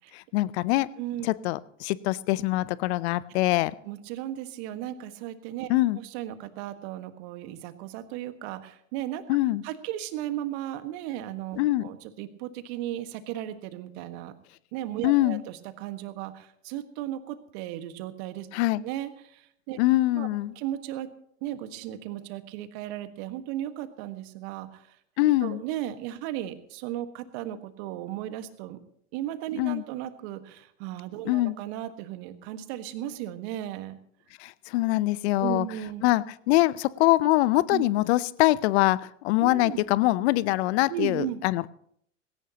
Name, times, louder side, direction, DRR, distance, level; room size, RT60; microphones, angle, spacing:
voice 1, 0.1-0.9 1.2-3.7 5.7-6.0 9.3-9.6 11.6-11.9 15.0-15.4 18.5-18.8 19.8-20.5 25.2-25.6 29.6-29.8 31.2-31.6 34.4-35.7 36.0-41.7, left 17 dB, 55° left, 19 dB, 0.7 m, -24 dB
voice 2, 1.0-1.3 3.9-5.7 6.0-9.2 9.6-14.3 14.7-18.5 18.8-19.8 20.1-20.3 20.6-21.1 21.4-25.0 25.4-28.8 29.1-34.0 35.4-36.0 37.7-37.8 39.4-39.8 40.9-41.4, right 12 dB, 55° right, 9 dB, 1.7 m, -35 dB
19.0 x 17.5 x 3.0 m, 0.66 s
hypercardioid pair, 90°, 39 cm